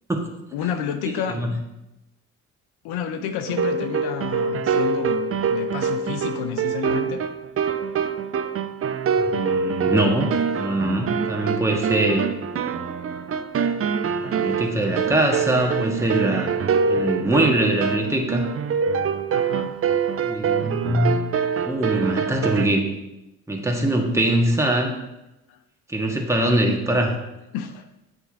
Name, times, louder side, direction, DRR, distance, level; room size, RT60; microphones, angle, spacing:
voice 1, 0.5-1.4 2.8-7.2 19.3-19.9 25.5-25.6 27.5-27.8, left 7 dB, 65° left, 8 dB, 0.7 m, -30 dB
voice 2, 1.0-1.5 9.2-10.3 10.6-12.2 14.2-16.6 16.9-18.5 20.2-21.2 21.6-22.8 23.5-24.9 25.9-27.2, right 1 dB, 5° right, 0 dB, 1.5 m, -22 dB
sound 1, 3.5-22.7, right 6 dB, 35° right, 0.5 m, -25 dB
8.4 x 6.3 x 2.7 m, 0.93 s
hypercardioid pair, 50°, 41 cm